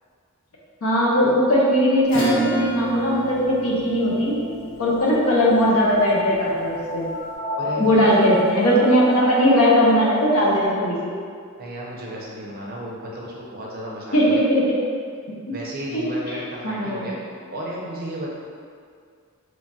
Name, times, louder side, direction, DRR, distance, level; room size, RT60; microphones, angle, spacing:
voice 1, 0.8-4.3 4.8-7.1 7.8-11.1 14.1-14.8 15.9-17.1, equal, 70° left, -5 dB, 0.6 m, -19 dB
Acoustic guitar / Strum, 2.1-7.0, right 2 dB, 40° left, 1.1 m, -30 dB
sound 1, 4.1-10.7, left 2 dB, 15° left, 0.5 m, -29 dB
voice 2, 7.6-8.1 11.6-14.4 15.5-17.2 17.5-18.3, right 1 dB, 45° right, -4 dB, 0.5 m, -33 dB
3.0 x 2.6 x 2.2 m, 2.2 s
head